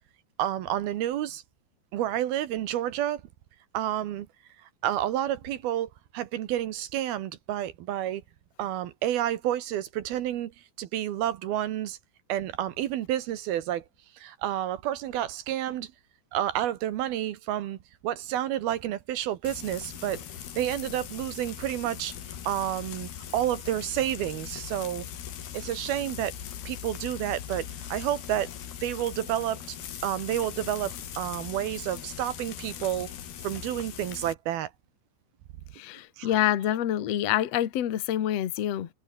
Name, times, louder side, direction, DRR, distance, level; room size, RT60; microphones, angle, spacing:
voice 1, 0.4-1.4 1.9-3.2 3.7-4.3 4.8-8.2 8.6-10.5 10.8-12.0 12.3-13.8 14.2-15.9 16.3-17.8 18.0-20.2 20.6-22.1 22.5-25.1 25.5-26.3 26.7-28.5 28.8-29.8 30.0-33.1 33.4-34.7 36.2-36.4, right 12 dB, 65° right, 2.7 m, -30 dB
Frying (food), 19.4-34.3, left 10 dB, 60° left, 4.0 m, -40 dB
voice 2, 35.7-38.9, left 12 dB, 80° left, 1.4 m, -27 dB
omnidirectional pair, 5.5 m